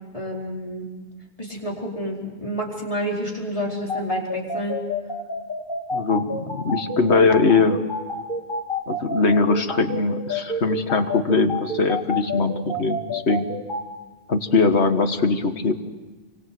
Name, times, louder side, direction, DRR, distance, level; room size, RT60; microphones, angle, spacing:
voice 1, 0.1-0.9 1.4-4.8, equal, 30° left, -2 dB, 4.9 m, -29 dB
sound 1, 3.9-13.8, left 1 dB, 55° left, 3.2 m, -28 dB
voice 2, 5.9-7.8 8.9-13.5 14.3-15.7, left 4 dB, 80° left, 7 dB, 1.9 m, -21 dB
29.0 x 25.0 x 7.9 m, 1.3 s
omnidirectional pair, 1.1 m